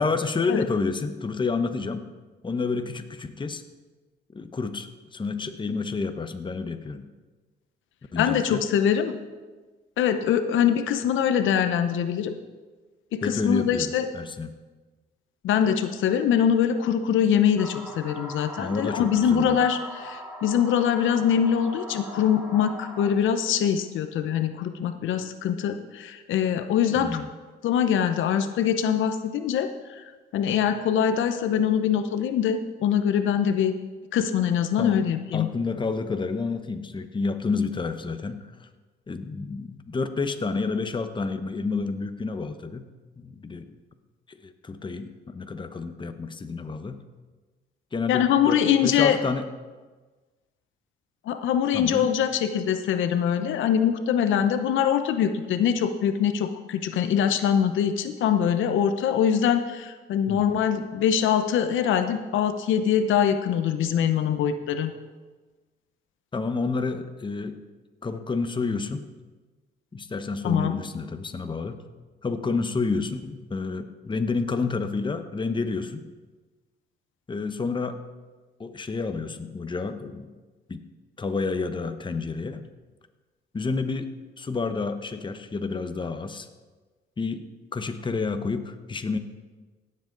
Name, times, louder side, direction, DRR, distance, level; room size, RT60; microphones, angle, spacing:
voice 1, 0.0-2.1 2.4-3.6 4.3-7.1 8.1-8.6 13.2-14.5 18.6-19.6 26.9-27.3 34.7-35.1 35.3-38.7 39.1-42.8 43.2-43.8 44.3-47.0 47.9-49.5 51.7-52.1 60.3-60.4 66.3-67.6 68.0-69.1 69.9-71.8 72.2-76.0 77.3-78.0 78.6-80.3 80.7-80.8 81.2-82.6 83.5-86.5 87.2-89.2, left 4 dB, 25° left, 8 dB, 0.9 m, -29 dB
voice 2, 8.2-9.1 10.0-12.3 13.1-14.1 15.4-27.1 27.6-30.0 30.3-33.7 34.1-35.5 48.1-49.2 51.3-64.9 70.4-70.8, left 8 dB, 80° left, 8 dB, 0.8 m, -23 dB
sound 1, 17.6-23.1, equal, 10° right, 2.0 m, -40 dB
17.0 x 7.7 x 3.9 m, 1.3 s
cardioid pair, 90°, 20 cm